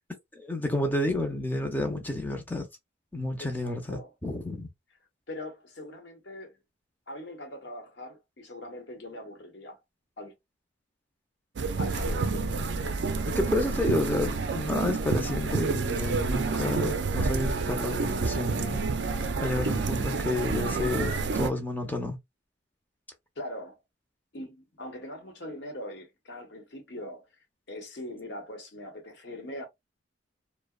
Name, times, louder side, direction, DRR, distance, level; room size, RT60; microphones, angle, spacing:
voice 1, 0.3-2.7 3.1-4.7 13.3-18.8 19.4-22.2, left 1 dB, 10° left, 0.5 m, -30 dB
voice 2, 3.4-4.1 5.3-6.6 7.1-9.8 10.2-10.3 11.8-12.7 19.5-19.9 23.4-23.8 24.3-27.3 27.7-29.6, left 1 dB, 65° left, 0.9 m, -41 dB
sound 1, 11.6-21.5, right 4 dB, 65° right, 0.4 m, -29 dB
2.8 x 2.0 x 2.2 m
head